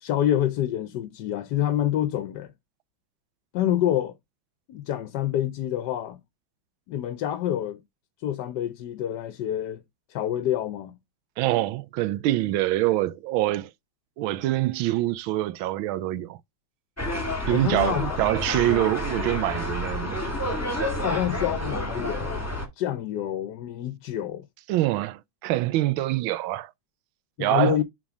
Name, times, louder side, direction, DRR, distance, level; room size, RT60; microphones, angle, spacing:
voice 1, 0.0-2.5 3.5-4.1 4.7-6.2 6.9-7.8 8.2-9.8 10.1-11.0 17.5-18.2 21.0-22.4 22.8-24.4 27.4-27.8, left 11 dB, 65° left, 1.2 m, -27 dB
voice 2, 11.4-13.7 14.2-16.4 17.5-20.2 24.7-26.7 27.4-27.8, right 15 dB, 85° right, 1.4 m, -25 dB
sound 1, 17.0-22.7, left 1 dB, 10° left, 1.5 m, -29 dB
6.2 x 3.6 x 4.9 m
omnidirectional pair, 2.2 m